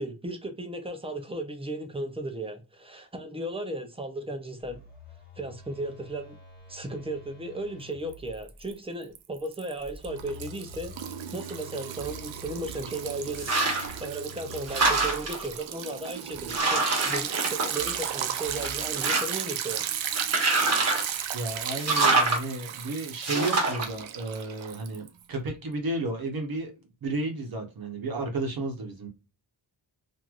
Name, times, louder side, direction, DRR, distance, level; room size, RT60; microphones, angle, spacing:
voice 1, 0.0-4.8 5.4-6.4 6.7-10.9 11.3-19.9, right 2 dB, 15° right, 0.5 m, -35 dB
Telephone, 4.6-8.6 9.8-15.5, equal, 20° left, 1.4 m, -47 dB
Liquid, 8.1-8.7 9.0-25.2, right 9 dB, 75° right, 0.6 m, -35 dB
sound 1, 13.3-14.0 14.4-15.5 16.1-16.2 16.5-18.2 18.6-19.5 20.2-21.1 21.8-22.4 23.2-23.8, right 3 dB, 35° right, 1.2 m, -25 dB
voice 2, 21.3-26.7 27.0-29.1, right 2 dB, 50° right, 0.9 m, -32 dB
3.0 x 2.6 x 2.3 m
wide cardioid pair, 135°, 46 cm